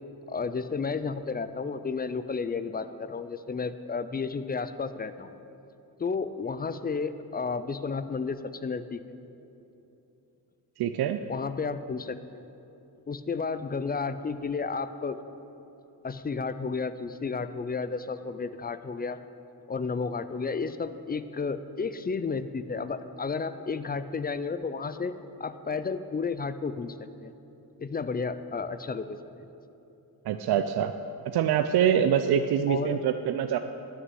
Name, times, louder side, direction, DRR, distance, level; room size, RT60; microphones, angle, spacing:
voice 1, 0.3-5.3 6.0-9.0 11.3-12.4 13.1-15.2 16.0-19.2 19.7-25.1 25.4-27.3 27.8-29.2 32.7-33.0, left 4 dB, 25° left, 12 dB, 0.4 m, -32 dB
voice 2, 10.8-11.2 30.3-30.9 31.3-33.6, right 9 dB, 75° right, 8 dB, 0.5 m, -24 dB
11.0 x 6.4 x 7.7 m, 2.9 s
cardioid pair, 105°, 39 cm